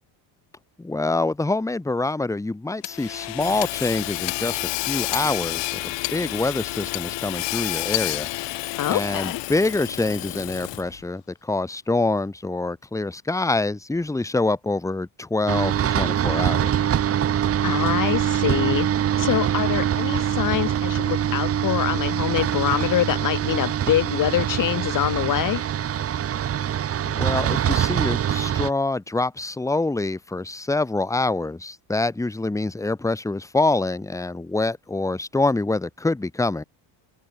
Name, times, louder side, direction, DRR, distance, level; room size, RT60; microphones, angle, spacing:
voice 1, 0.8-5.8 6.1-8.6 8.9-16.7 27.0-36.6, left 2 dB, 5° left, 1.2 m, -25 dB
Hammer / Sawing, 2.8-11.0, left 20 dB, 65° left, 1.0 m, -29 dB
voice 2, 8.8-9.4 17.6-18.9 19.2-25.6, left 12 dB, 40° left, 0.9 m, -24 dB
sound 1, 15.5-28.7, right 10 dB, 30° right, 0.8 m, -24 dB
open air
cardioid pair, 110°, 47 cm